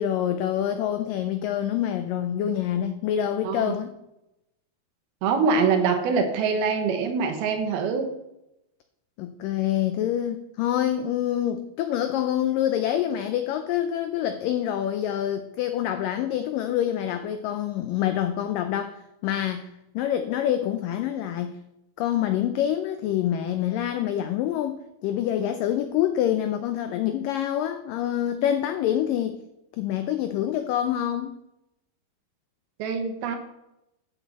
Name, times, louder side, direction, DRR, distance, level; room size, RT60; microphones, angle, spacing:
voice 1, 0.0-3.9 9.2-19.7 20.0-21.6 22.0-29.4 29.8-31.4, left 11 dB, 90° left, 8 dB, 1.9 m, -26 dB
voice 2, 3.4-3.7 5.2-8.1 32.8-33.4, right 5 dB, 75° right, 6 dB, 2.9 m, -24 dB
12.5 x 7.2 x 4.1 m, 0.88 s
omnidirectional pair, 4.6 m